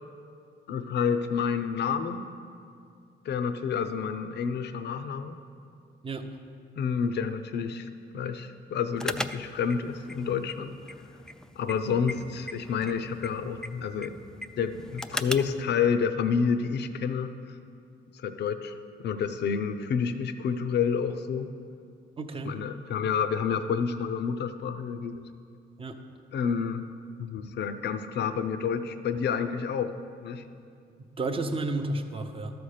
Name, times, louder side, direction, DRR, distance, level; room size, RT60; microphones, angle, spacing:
voice 1, 0.7-2.2 3.2-5.4 6.8-10.7 11.6-14.1 14.6-17.6 18.1-18.7 19.0-21.5 22.4-25.1 26.3-26.8 27.2-30.0 30.2-30.4, left 6 dB, 60° left, 10 dB, 0.6 m, -29 dB
sound 1, 9.0-15.6, left 1 dB, 5° left, 0.3 m, -39 dB
voice 2, 22.2-22.6 25.8-26.0 31.2-32.5, right 2 dB, 25° right, 6 dB, 0.7 m, -31 dB
12.5 x 4.3 x 6.6 m, 2.4 s
cardioid pair, 90°, 20 cm